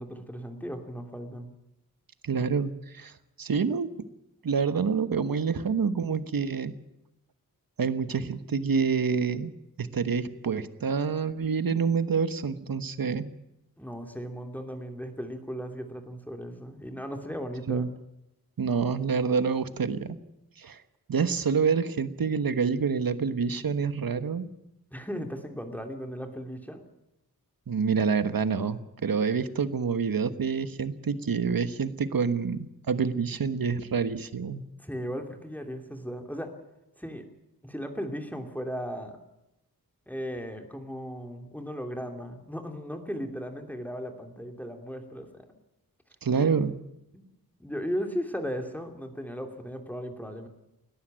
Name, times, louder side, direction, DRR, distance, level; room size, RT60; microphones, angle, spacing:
voice 1, 0.0-1.5 13.8-17.8 24.9-26.8 34.8-36.5 37.0-37.3 37.6-39.2 40.1-45.5 47.1-47.3 47.6-50.5, equal, 5° left, 4 dB, 2.7 m, -36 dB
voice 2, 2.2-3.1 3.4-3.9 4.4-6.7 7.8-9.5 9.8-13.3 17.7-17.9 18.6-20.2 20.6-20.8 21.1-24.5 27.7-34.6 46.2-46.7, right 5 dB, 65° right, 12 dB, 1.3 m, -27 dB
20.5 x 14.0 x 9.0 m, 0.89 s
wide cardioid pair, 80°, 37 cm